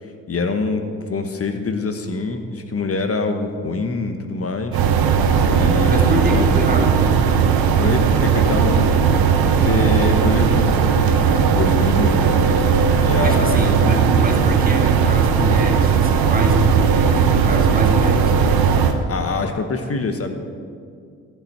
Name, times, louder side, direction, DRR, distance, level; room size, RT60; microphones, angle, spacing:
voice 1, 0.3-4.8 5.6-6.6 7.8-8.9 9.4-11.1 11.5-12.4 13.0-13.8 19.1-20.3, left 3 dB, 35° left, 6 dB, 1.3 m, -25 dB
sound 1, 4.7-18.9, right 6 dB, 65° right, 1.0 m, -17 dB
voice 2, 5.9-7.1 13.2-18.4, equal, 20° right, 2 dB, 1.9 m, -25 dB
14.5 x 5.6 x 6.0 m, 2.2 s
hypercardioid pair, 45°, 39 cm